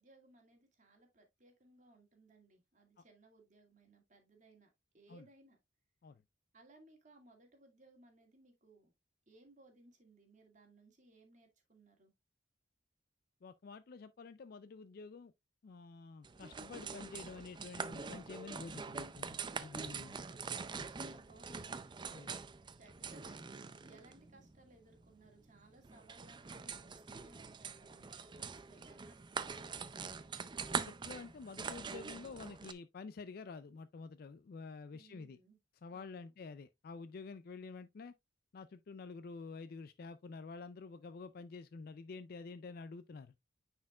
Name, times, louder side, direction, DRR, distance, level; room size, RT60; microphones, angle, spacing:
voice 1, 0.0-5.6 6.5-8.9 9.3-12.1 19.9-21.8 22.8-29.9 34.9-35.6 35.9-36.3, right 2 dB, 40° right, 2.0 m, -63 dB
voice 2, 13.4-15.3 15.6-20.1 20.7-20.9 22.1-22.3 30.7-35.4 35.8-38.1 38.5-43.3, left 4 dB, 50° left, 0.4 m, -49 dB
sound 1, 16.2-32.7, right 5 dB, 25° right, 0.4 m, -44 dB
9.5 x 4.4 x 2.3 m
head